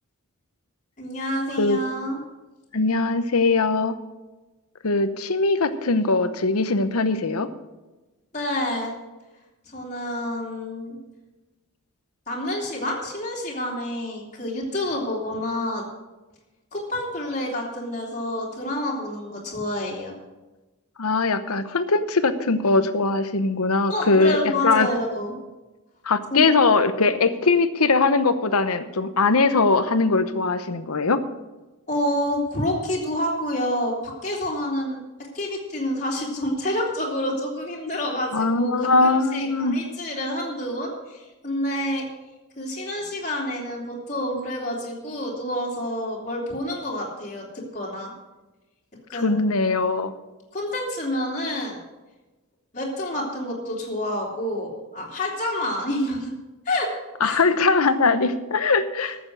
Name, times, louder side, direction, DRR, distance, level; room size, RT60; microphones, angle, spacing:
voice 1, 1.0-2.2 8.3-8.9 9.7-11.0 12.3-15.9 16.7-20.1 23.9-25.3 26.3-26.4 31.9-35.0 35.3-42.0 42.6-48.1 49.1-49.4 50.5-51.8 52.7-56.3 56.6-56.9 57.2-57.4, left 1 dB, 35° left, -4 dB, 2.9 m, -28 dB
voice 2, 2.7-3.9 4.8-7.5 21.0-24.4 24.6-24.9 26.0-31.2 38.3-39.8 49.1-50.1 57.2-59.2, left 3 dB, 75° left, 11 dB, 0.9 m, -21 dB
14.0 x 7.1 x 6.3 m, 1.1 s
head